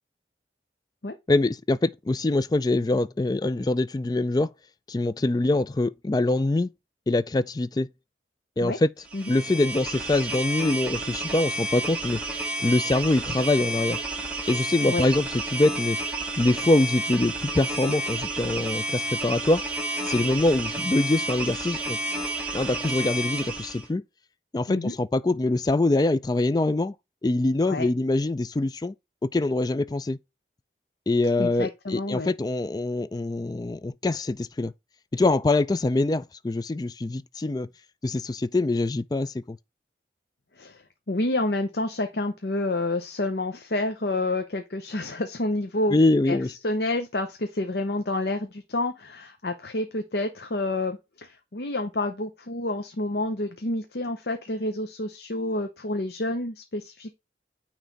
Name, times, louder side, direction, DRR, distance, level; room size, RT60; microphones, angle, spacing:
voice 1, 1.3-4.5 4.9-6.7 7.1-7.9 8.6-8.9 9.3-12.2 12.6-14.0 14.5-16.0 16.4-19.6 20.0-22.0 22.5-24.0 24.5-26.9 27.2-28.9 29.3-30.2 31.1-34.7 35.1-37.7 38.0-39.6 45.9-46.5, left 2 dB, 20° left, 0.3 m, -24 dB
sound 1, 9.1-23.9, right 2 dB, 10° right, 1.6 m, -31 dB
voice 2, 31.4-32.3 40.6-40.8 41.1-46.0 46.3-46.4 46.6-57.1, left 2 dB, 60° left, 0.7 m, -29 dB
9.1 x 3.3 x 4.0 m
head